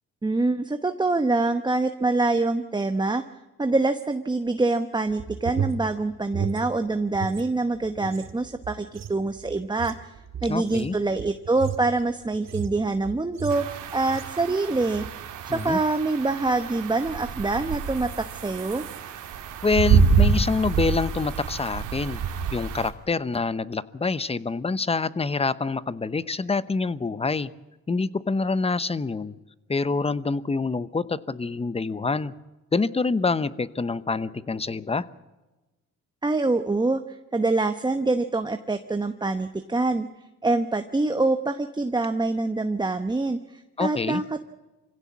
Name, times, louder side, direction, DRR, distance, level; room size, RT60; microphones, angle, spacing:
voice 1, 0.2-3.2 3.6-10.1 10.4-15.0 15.4-18.8 36.2-40.1 40.4-44.5, right 3 dB, 15° right, 8 dB, 1.0 m, -25 dB
sound 1, 5.1-7.5 7.8-14.5 14.8-15.2 15.5-15.8, right 7 dB, 60° right, 2.1 m, -35 dB
voice 2, 10.5-10.9 15.5-15.8 19.6-22.2 22.5-27.5 27.9-29.4 29.7-32.3 32.7-35.0 43.8-44.2, left 4 dB, 20° left, 16 dB, 0.9 m, -26 dB
sound 2, 13.5-22.9, right 6 dB, 85° right, 2.6 m, -27 dB
25.0 x 16.5 x 8.6 m, 1.1 s
cardioid pair, 90°, 30 cm